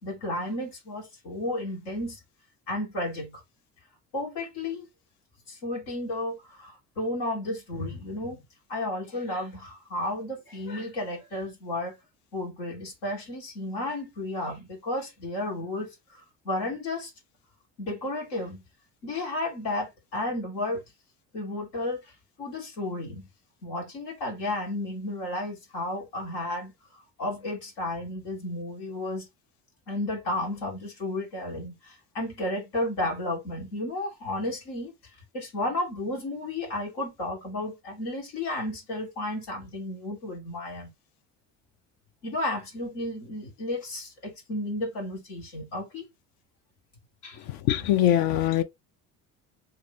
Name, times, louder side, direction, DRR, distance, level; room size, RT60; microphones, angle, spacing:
voice 1, 0.0-2.2 2.7-3.4 4.1-4.9 5.5-8.4 8.7-12.0 12.3-17.1 17.8-18.6 19.0-20.8 21.3-23.3 23.6-26.7 27.2-29.3 29.9-40.9 42.2-46.1 47.2-47.4, left 1 dB, 80° left, 1.3 m, -33 dB
voice 2, 47.7-48.6, left 11 dB, 60° left, 0.6 m, -22 dB
2.7 x 2.6 x 3.3 m
hypercardioid pair, 65°, 42 cm